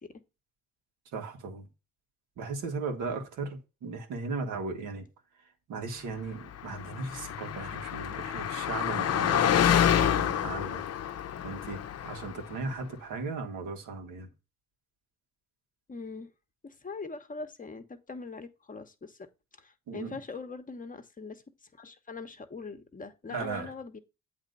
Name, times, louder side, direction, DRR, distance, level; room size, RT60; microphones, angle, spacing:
voice 1, 1.1-1.6 2.4-5.1 5.7-10.9 11.4-11.8 12.0-14.3 19.9-20.2 23.3-23.7, right 4 dB, 85° right, 1.9 m, -37 dB
Car passing by, 6.6-12.5, left 9 dB, 55° left, 0.7 m, -28 dB
voice 2, 15.9-16.3 16.6-19.3 19.6-21.4 21.8-24.0, left 4 dB, 25° left, 1.0 m, -42 dB
8.0 x 3.4 x 5.4 m
cardioid pair, 90°, 30 cm